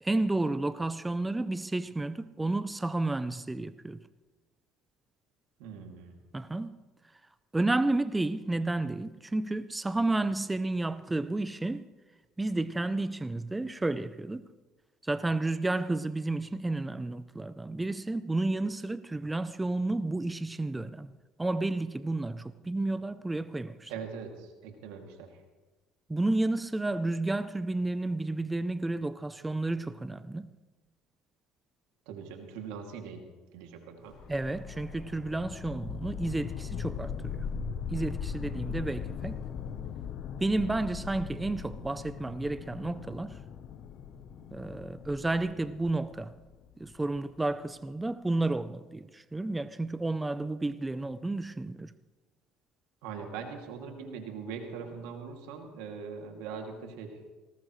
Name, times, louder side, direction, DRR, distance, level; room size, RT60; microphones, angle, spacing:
voice 1, 0.0-4.0 6.3-6.8 7.5-11.9 12.4-14.5 15.0-21.1 21.4-23.9 26.1-30.5 34.3-37.5 37.9-39.3 40.4-43.4 44.5-46.3 46.8-51.9, right 2 dB, 10° right, 0.5 m, -31 dB
voice 2, 5.6-6.1 23.9-25.3 32.1-33.2 33.5-34.2 53.0-57.2, right 6 dB, 85° right, 2.5 m, -41 dB
sound 1, 34.1-47.2, left 7 dB, 55° left, 0.9 m, -39 dB
19.5 x 18.0 x 3.2 m
supercardioid pair, 100°, 0 cm